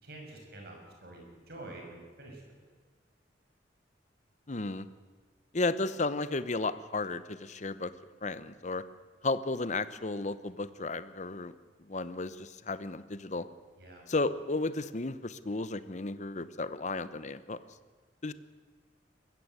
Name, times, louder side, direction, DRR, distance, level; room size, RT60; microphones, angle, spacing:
voice 1, 0.0-2.5 13.8-14.0, right 2 dB, 60° right, 1 dB, 6.1 m, -47 dB
voice 2, 4.5-4.9 5.5-7.9 8.2-8.8 9.2-11.5 11.8-13.4 14.1-17.6 18.2-18.3, left 3 dB, 40° left, 14 dB, 0.9 m, -33 dB
21.5 x 15.5 x 8.2 m, 1.4 s
head